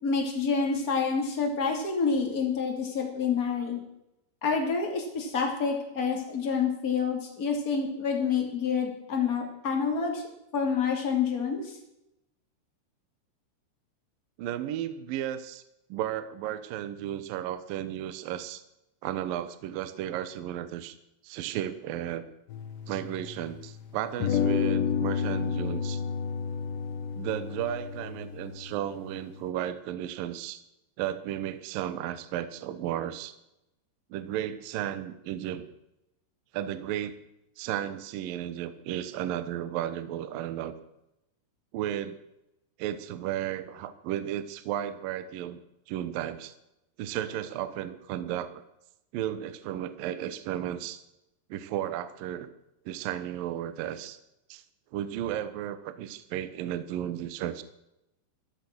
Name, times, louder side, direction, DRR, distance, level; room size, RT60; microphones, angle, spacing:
voice 1, 0.0-3.8 4.4-10.2 10.5-11.7, left 5 dB, 25° left, 1 dB, 2.3 m, -28 dB
voice 2, 14.4-15.6 15.9-18.6 19.0-21.0 21.2-22.2 22.9-26.0 27.2-30.6 31.0-33.3 34.1-35.7 36.5-37.2 37.6-40.7 41.7-42.2 42.8-45.6 45.9-46.5 47.0-48.6 49.1-51.0 51.5-52.5 52.9-54.2 54.5-54.6 54.9-57.6, right 11 dB, 90° right, 12 dB, 1.9 m, -34 dB
sound 1, 22.5-23.7 24.2-29.4, left 7 dB, 70° left, 3.4 m, -31 dB
14.0 x 13.0 x 6.1 m, 0.88 s
omnidirectional pair, 5.7 m